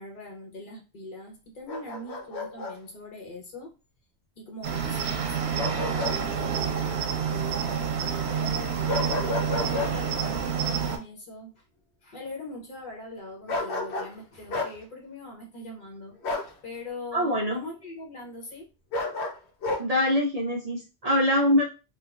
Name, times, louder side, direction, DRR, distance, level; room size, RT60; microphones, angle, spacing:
voice 1, 0.0-3.7 4.4-9.2 9.6-11.6 12.0-16.2 16.6-18.7, left 1 dB, 55° left, 0 dB, 0.9 m, -41 dB
Bark, 1.7-2.7 5.6-6.2 6.5-6.7 8.9-9.9 13.5-14.1 14.5-14.7 16.2-16.5 18.9-19.8, left 2 dB, 85° left, 0.9 m, -31 dB
Cricket, 4.6-11.0, right 7 dB, 85° right, 0.9 m, -28 dB
voice 2, 17.1-17.6 19.8-21.6, left 1 dB, 50° right, -2 dB, 0.5 m, -24 dB
3.0 x 2.3 x 2.4 m, 0.31 s
omnidirectional pair, 1.1 m